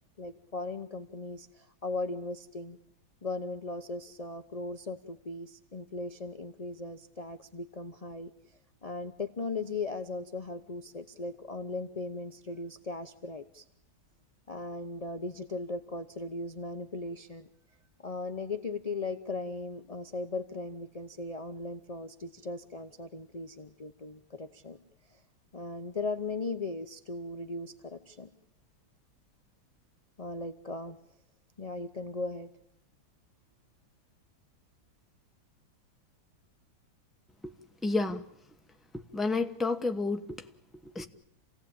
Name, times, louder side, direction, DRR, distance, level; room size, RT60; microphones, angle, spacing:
voice 1, 0.2-2.8 3.2-8.3 8.8-13.6 14.5-17.5 18.0-24.8 25.1-25.2 25.5-28.3 30.2-31.0 31.6-32.5, left 3 dB, 45° left, 9 dB, 0.5 m, -38 dB
voice 2, 37.8-38.2 39.1-40.4 40.8-41.0, left 3 dB, ahead, 5 dB, 0.7 m, -30 dB
28.0 x 17.5 x 8.9 m, 0.83 s
omnidirectional pair, 2.2 m